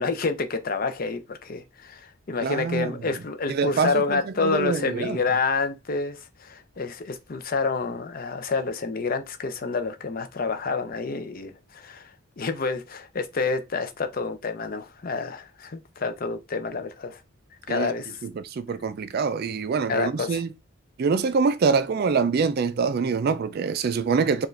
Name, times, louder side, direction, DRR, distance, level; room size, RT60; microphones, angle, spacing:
voice 1, 0.0-12.1 12.4-17.2 17.7-18.2 19.9-20.4, left 4 dB, 40° left, 0.5 m, -28 dB
voice 2, 2.4-2.9 3.5-5.2 17.7-17.9 18.2-20.5 21.0-24.5, right 5 dB, 45° right, 0.3 m, -25 dB
4.7 x 2.4 x 3.2 m
head